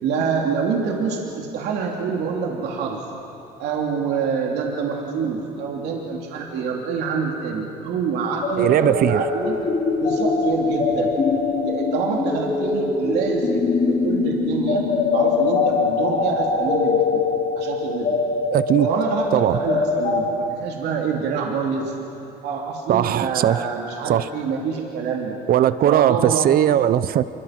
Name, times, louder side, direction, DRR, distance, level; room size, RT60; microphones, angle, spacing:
voice 1, 0.0-3.0 3.6-9.6 10.0-11.1 11.6-14.8 15.1-17.2 17.6-18.2 18.8-21.9 22.4-25.4 25.8-26.5, right 5 dB, 80° right, 0 dB, 2.9 m, -26 dB
sound 1, 8.4-20.3, left 4 dB, 50° left, 4.9 m, -22 dB
voice 2, 8.6-9.2 18.5-18.9 19.3-19.6 22.9-23.6 24.1-24.2 25.5-27.2, right 11 dB, 60° right, 15 dB, 0.8 m, -18 dB
26.0 x 23.0 x 6.0 m, 2.8 s
cardioid pair, 110°, 17 cm